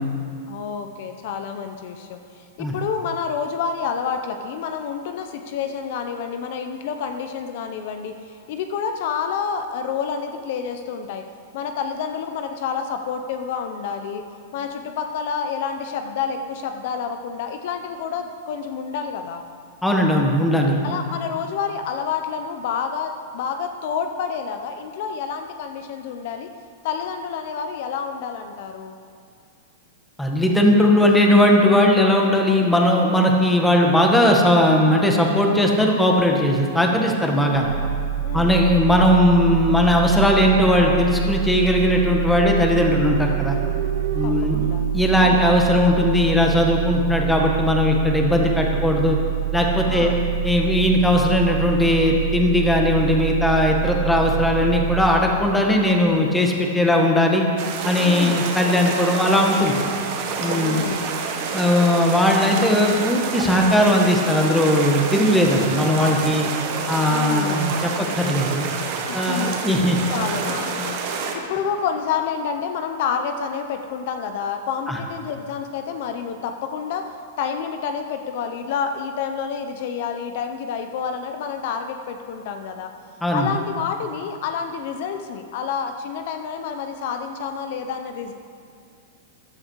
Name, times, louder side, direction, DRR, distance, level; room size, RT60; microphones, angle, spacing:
voice 1, 0.5-11.2 11.5-14.2 14.5-19.4 20.8-26.5 26.8-29.0 38.2-38.6 44.2-44.8 45.2-45.4 49.9-50.2 58.0-58.4 60.4-61.1 66.2-67.7 69.1-69.6 70.1-71.0 71.3-82.9 83.3-88.3, left 6 dB, 55° left, 6 dB, 0.8 m, -29 dB
voice 2, 19.8-20.8 30.2-37.7 38.3-43.6 44.1-44.6 44.9-49.2 49.5-50.1 50.4-57.4 57.8-59.7 60.4-60.8 61.5-66.5 66.9-68.7 69.1-70.0 74.9-75.0 83.2-83.5, left 1 dB, 5° left, 0 dB, 1.5 m, -18 dB
sound 1, 37.5-55.0, right 13 dB, 85° left, 3.3 m, -26 dB
sound 2, 42.4-46.2, right 7 dB, 70° right, 0.8 m, -34 dB
sound 3, 57.6-71.3, right 5 dB, 45° right, 1.6 m, -28 dB
14.5 x 11.0 x 4.7 m, 2.4 s
supercardioid pair, 150°, 0 cm